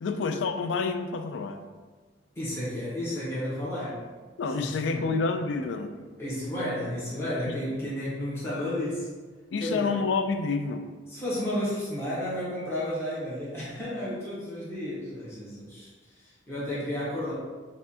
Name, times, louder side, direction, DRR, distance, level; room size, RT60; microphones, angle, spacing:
voice 1, 0.0-1.6 4.4-5.9 9.5-10.9, left 4 dB, 70° left, 7 dB, 0.3 m, -28 dB
voice 2, 2.3-4.1 4.5-5.1 6.2-9.1 9.6-10.0 11.1-15.9 16.2-17.3, left 1 dB, 15° left, -10 dB, 1.1 m, -32 dB
5.4 x 2.5 x 2.8 m, 1.3 s
head